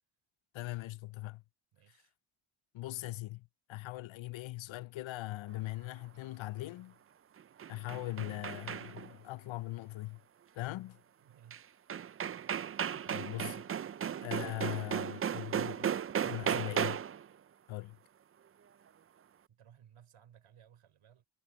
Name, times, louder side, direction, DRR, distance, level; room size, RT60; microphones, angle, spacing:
voice 1, 0.5-1.4 2.7-7.0 7.7-10.2 10.5-11.0 13.1-13.6 14.2-15.9 16.2-17.0 17.7-18.0, left 18 dB, 70° left, 0.5 m, -40 dB
voice 2, 1.7-2.1 11.2-11.7 19.5-21.3, right 9 dB, 85° right, 5.0 m, -61 dB
sound 1, 7.4-9.2 11.5-11.6 11.9-17.3, right 9 dB, 30° right, 0.4 m, -35 dB
cardioid pair, 60°, 49 cm